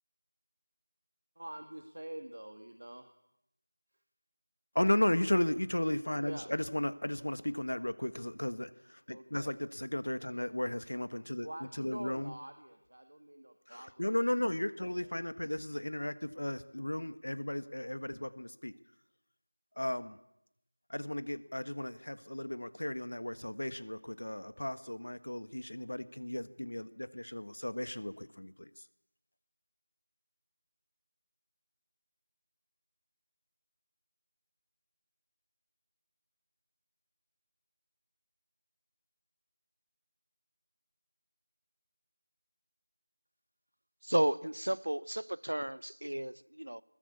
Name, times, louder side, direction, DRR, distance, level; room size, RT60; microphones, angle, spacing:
voice 1, 1.4-3.1 6.2-6.5 9.1-9.5 10.3-10.5 11.4-14.0 14.6-14.7 15.0-15.1, right 1 dB, 65° right, 2.0 m, -46 dB
voice 2, 4.7-11.5 11.8-12.3 13.7-18.7 19.8-20.2 20.9-28.7, left 1 dB, 70° left, 1.5 m, -35 dB
voice 3, 44.0-46.8, right 1 dB, 85° right, 0.8 m, -33 dB
21.0 x 20.5 x 8.4 m
figure-of-eight pair, 175°, 0 cm